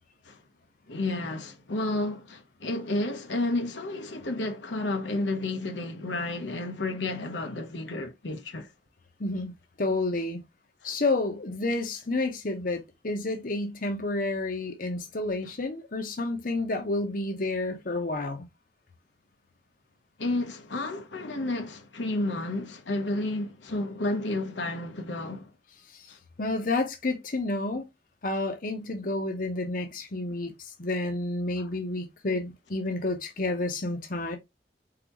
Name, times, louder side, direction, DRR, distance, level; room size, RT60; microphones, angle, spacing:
voice 1, 0.9-8.7 10.8-10.9 20.2-25.5 26.1-26.2 31.6-31.7, left 2 dB, 80° left, 1.0 m, -31 dB
voice 2, 9.2-9.5 9.8-10.4 10.8-18.5 25.9-26.1 26.4-27.8 28.2-34.4, left 2 dB, 50° left, 0.9 m, -30 dB
4.3 x 3.9 x 3.0 m
head